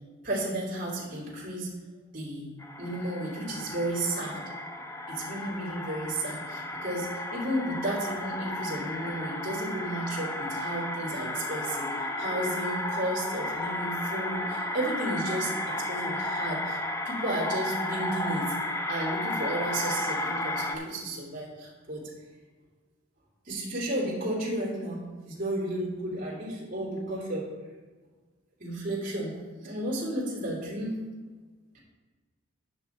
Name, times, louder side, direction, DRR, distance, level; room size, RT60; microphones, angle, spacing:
voice 1, 0.2-1.7 2.1-2.5 2.8-4.5 5.1-16.8 17.0-18.6 18.9-22.0 23.4-27.5 28.6-31.0, right 1 dB, 45° right, -7 dB, 2.8 m, -33 dB
sound 1, 2.6-20.8, left 1 dB, 15° left, 0.6 m, -33 dB
9.3 x 6.4 x 4.5 m, 1.4 s
head